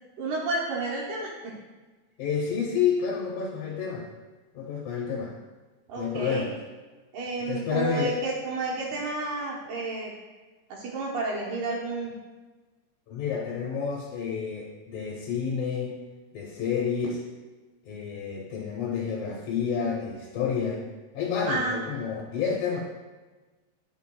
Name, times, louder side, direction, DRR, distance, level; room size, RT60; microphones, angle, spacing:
voice 1, 0.2-1.6 5.9-6.5 7.1-10.1 10.7-12.2 21.5-21.8, right 2 dB, 70° right, -4 dB, 2.3 m, -31 dB
voice 2, 2.2-4.1 4.5-5.3 6.0-6.5 7.5-8.2 13.1-16.0 16.3-17.2 17.8-20.8 21.1-22.8, left 6 dB, 70° left, -3 dB, 1.9 m, -29 dB
9.0 x 5.6 x 2.2 m, 1.3 s
omnidirectional pair, 4.1 m